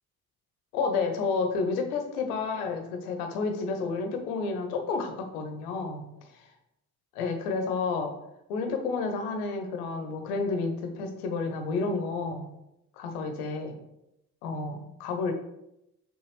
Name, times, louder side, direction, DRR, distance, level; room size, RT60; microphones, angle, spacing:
voice 1, 0.7-6.1 6.3-6.4 7.1-8.1 8.5-12.5 13.0-13.8 14.4-15.3, left 4 dB, 70° left, 6 dB, 1.0 m, -30 dB
5.9 x 5.7 x 3.2 m, 0.84 s
figure-of-eight pair, 40°, 46 cm